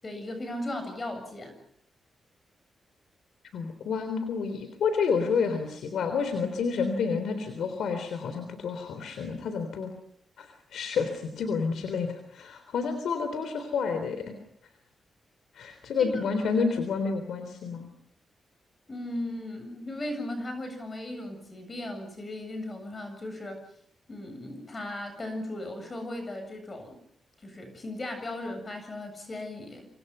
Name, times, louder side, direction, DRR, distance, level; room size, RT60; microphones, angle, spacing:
voice 1, 0.0-1.6 16.0-16.1 18.9-23.6 24.1-27.0 27.4-29.9, left 1 dB, 30° left, 7 dB, 7.6 m, -37 dB
voice 2, 3.5-9.9 10.4-14.3 15.5-17.9, left 5 dB, 85° left, 8 dB, 3.6 m, -29 dB
27.0 x 27.0 x 5.7 m, 0.67 s
cardioid pair, 105°, 0 cm